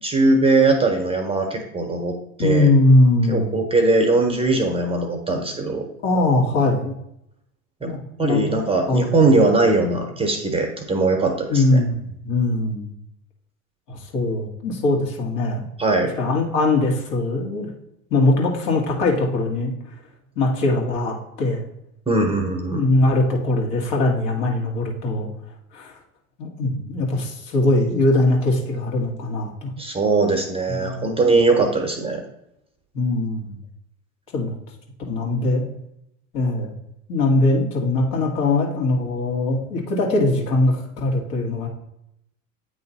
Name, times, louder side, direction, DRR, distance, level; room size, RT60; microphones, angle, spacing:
voice 1, 0.0-2.7 3.3-5.9 7.8-7.9 8.2-11.8 15.8-16.1 22.1-22.8 29.8-32.2, right 3 dB, 15° right, 3 dB, 0.9 m, -20 dB
voice 2, 2.4-3.5 6.0-6.9 7.8-8.5 8.9-9.1 11.5-12.9 13.9-15.6 16.2-17.7 18.1-19.7 20.3-21.6 22.2-22.3 22.6-25.3 25.7-25.9 26.4-29.7 30.7-31.1 32.9-33.6 34.3-34.5 35.1-35.7 36.3-36.7 37.1-41.7, left 2 dB, 65° left, 0 dB, 1.8 m, -21 dB
8.8 x 3.1 x 4.1 m, 0.80 s
hypercardioid pair, 85°, 42 cm